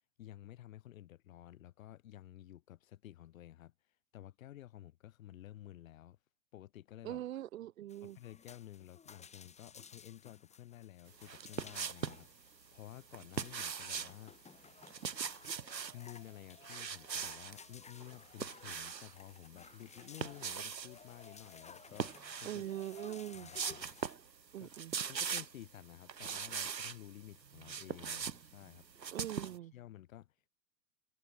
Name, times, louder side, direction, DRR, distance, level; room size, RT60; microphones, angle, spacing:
voice 1, 0.2-3.7 4.1-6.2 6.5-7.2 8.0-14.4 15.9-22.7 23.3-23.9 24.6-24.7 25.1-29.1 29.4-30.5, left 13 dB, 50° left, 4.0 m, -53 dB
voice 2, 7.0-8.2 22.4-23.5 24.5-24.9 29.1-29.7, right 13 dB, 55° right, 3.9 m, -42 dB
sound 1, 7.9-24.2, left 6 dB, 15° left, 6.3 m, -57 dB
sound 2, 11.2-12.2 13.1-14.2 14.8-16.0 16.6-17.6 18.0-19.1 20.0-20.9 21.9-22.7 23.0-23.1 23.5-24.3 24.6-25.6 26.1-27.0 27.4-29.6, right 6 dB, 85° right, 1.2 m, -40 dB
figure-of-eight pair, 110°, 49 cm